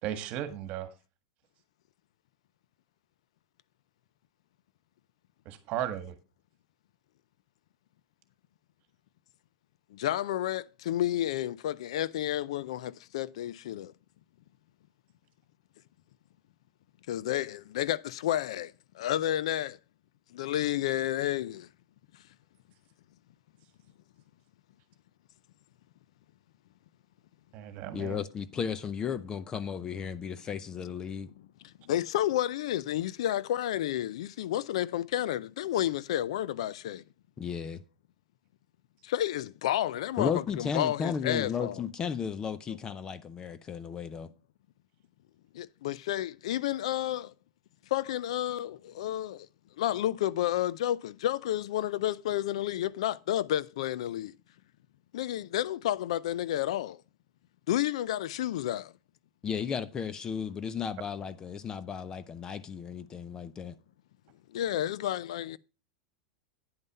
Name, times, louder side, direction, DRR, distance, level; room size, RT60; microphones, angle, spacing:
voice 1, 0.0-0.9 5.4-6.1 27.5-28.2, right 11 dB, 45° right, 1.6 m, -35 dB
voice 2, 9.9-13.9 17.1-19.8 20.3-21.7 31.6-37.0 39.0-41.8 45.5-47.3 47.9-49.5 49.8-54.3 55.1-57.0 57.7-58.9 64.5-65.6, left 12 dB, 75° left, 0.4 m, -31 dB
voice 3, 27.9-31.3 37.4-37.8 40.2-44.3 59.4-63.7, left 7 dB, 20° left, 0.6 m, -34 dB
9.6 x 5.5 x 5.3 m
supercardioid pair, 140°, 3 cm